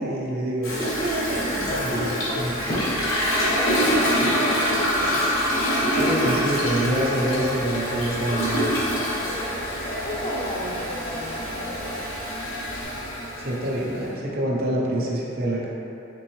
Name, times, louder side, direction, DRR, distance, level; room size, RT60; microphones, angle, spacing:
voice 1, 0.0-2.5 6.0-8.7 13.4-15.7, right 1 dB, 50° right, -4 dB, 0.7 m, -26 dB
Toilet flush, 0.6-14.1, equal, 90° left, 1.1 m, -26 dB
voice 2, 1.7-2.4 2.8-5.3 9.2-12.1, left 1 dB, 25° left, -3 dB, 0.6 m, -33 dB
Fireworks, 2.7-5.7, equal, 70° left, 1.4 m, -35 dB
Rain, 4.2-12.8, left 1 dB, 50° left, 1.1 m, -42 dB
4.5 x 3.5 x 3.1 m, 2.8 s
head